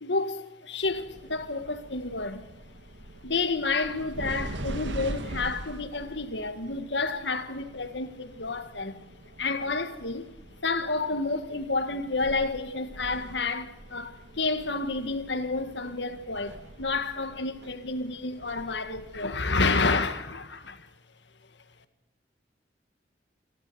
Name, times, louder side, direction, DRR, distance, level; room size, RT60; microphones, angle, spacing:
voice 1, 0.0-2.5 3.2-9.0 9.4-10.3 10.6-20.9, left 3 dB, 75° left, 1.8 m, -30 dB
sound 1, 0.8-19.4, right 1 dB, 85° right, 1.7 m, -43 dB
28.0 x 12.0 x 8.0 m
head